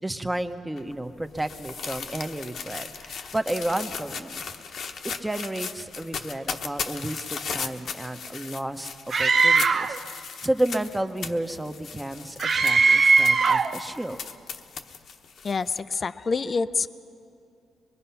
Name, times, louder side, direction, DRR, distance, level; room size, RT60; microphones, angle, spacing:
voice 1, 0.0-4.5 5.0-8.9 9.2-10.0 10.4-14.2, right 1 dB, 10° right, 8 dB, 0.9 m, -31 dB
sound 1, 0.8-15.8, left 6 dB, 60° left, 1.0 m, -37 dB
Screaming, 9.1-10.0 12.4-13.8, right 4 dB, 50° right, 0.8 m, -19 dB
voice 2, 15.4-16.9, left 4 dB, 40° left, 13 dB, 0.5 m, -27 dB
23.5 x 22.0 x 5.8 m, 2.5 s
cardioid pair, 90°, 0 cm